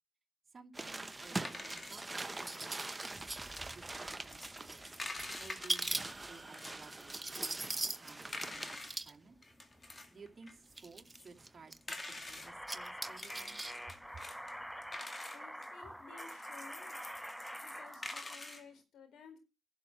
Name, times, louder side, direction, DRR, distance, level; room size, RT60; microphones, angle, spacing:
voice 1, 0.5-2.8 3.3-9.4 9.8-13.6 14.1-14.2, right 4 dB, 40° right, 1 dB, 2.8 m, -57 dB
sound 1, 0.7-9.1 9.9-10.0 10.7-11.8 12.5-13.7 14.0-14.1, right 2 dB, 20° right, 0.9 m, -41 dB
sound 2, 1.1-6.9 7.3-9.0 9.3-12.5 13.1-18.7, left 2 dB, 30° left, 2.2 m, -48 dB
sound 3, 12.4-18.3, equal, ahead, 0.6 m, -46 dB
voice 2, 15.3-17.0 17.6-19.4, left 5 dB, 85° left, 7 dB, 4.0 m, -56 dB
11.5 x 6.3 x 7.4 m, 0.28 s
cardioid pair, 70°, 0 cm